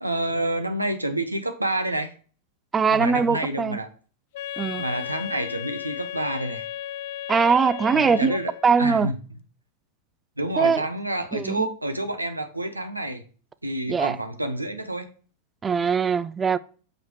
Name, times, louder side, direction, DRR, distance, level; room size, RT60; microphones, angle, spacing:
voice 1, 0.0-2.1 2.9-3.9 4.8-6.7 8.0-8.5 8.8-9.2 10.4-13.2 13.6-15.1, right 1 dB, 85° right, 0.9 m, -28 dB
voice 2, 2.7-3.8 4.6-4.8 7.3-8.4 8.6-9.1 10.6-10.8 11.3-11.7 13.9-14.2 15.6-16.6, right 5 dB, 20° right, 0.4 m, -21 dB
Wind instrument woodwind instrument, 4.3-8.8, left 12 dB, 50° left, 0.5 m, -35 dB
6.5 x 5.1 x 4.8 m
figure-of-eight pair, 90°, 0 cm